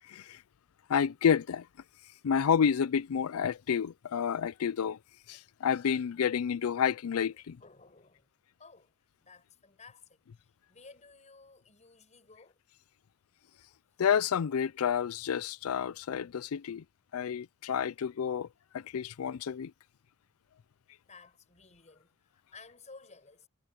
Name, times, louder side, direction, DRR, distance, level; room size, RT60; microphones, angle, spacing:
voice 1, 0.0-0.4 0.9-1.7 2.2-5.0 5.3-7.6 14.0-16.8 17.1-18.5 18.7-19.7, left 7 dB, 80° left, 0.4 m, -29 dB
voice 2, 7.3-8.3 8.6-8.9 9.2-12.6 13.4-13.7 21.0-23.5, left 4 dB, 35° left, 6.0 m, -56 dB
head